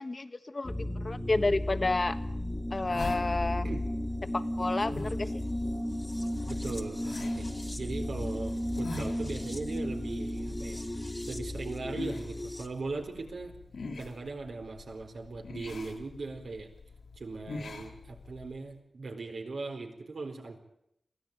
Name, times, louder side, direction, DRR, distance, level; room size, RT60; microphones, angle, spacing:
voice 1, 0.0-2.2 2.7-3.7 4.2-5.4, left 2 dB, 40° left, 11 dB, 1.4 m, -30 dB
sound 1, 0.6-12.7, left 1 dB, 10° left, 2.1 m, -34 dB
sound 2, 2.0-18.6, left 3 dB, 90° left, 4.0 m, -45 dB
voice 2, 6.5-7.5 7.8-10.8 11.3-13.5 14.0-16.7 17.2-20.6, right 3 dB, 75° right, 3 dB, 4.3 m, -39 dB
23.5 x 16.0 x 9.0 m, 0.79 s
wide cardioid pair, 100°, 0 cm